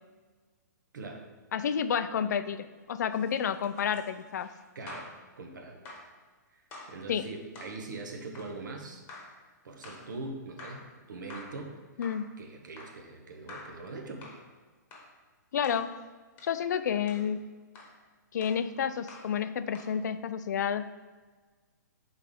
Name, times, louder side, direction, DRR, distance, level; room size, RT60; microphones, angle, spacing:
voice 1, 0.9-1.3 4.7-5.1 5.4-5.8 6.5-6.6 6.9-9.0 9.6-11.8 12.4-14.4, right 3 dB, 80° right, 4 dB, 1.1 m, -42 dB
voice 2, 1.5-4.5 7.1-7.3 12.0-12.3 15.5-15.9 16.4-17.4 18.3-20.9, left 8 dB, 65° left, 13 dB, 0.4 m, -30 dB
sound 1, 3.0-5.2 5.8-6.1 6.7-7.0 7.5-7.8 8.3-8.6 9.1-9.4 9.8-10.1 10.6-10.9 11.3-11.6 12.0-12.3 12.8-13.0 13.5-13.8 14.2-14.4 14.9-15.1 15.6-15.8 16.4-16.6 17.1-17.3 17.7-18.0 18.4-18.6 19.1-19.3 19.7-20.0, left 2 dB, 20° left, 1.0 m, -48 dB
5.6 x 4.0 x 5.0 m, 1.4 s
hypercardioid pair, 160°, 10 cm